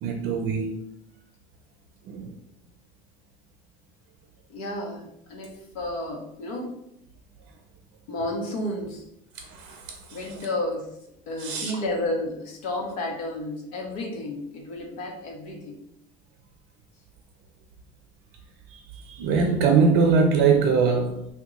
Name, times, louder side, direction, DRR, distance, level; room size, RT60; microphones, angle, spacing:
voice 1, 0.0-0.8 2.0-2.3 9.3-10.2 11.4-11.7 18.7-21.3, right 5 dB, 65° right, 0.5 m, -22 dB
voice 2, 4.5-6.7 8.1-9.1 10.1-11.0 11.3-15.9, left 1 dB, 90° left, 0.8 m, -32 dB
2.9 x 2.2 x 3.6 m
supercardioid pair, 100°, 18 cm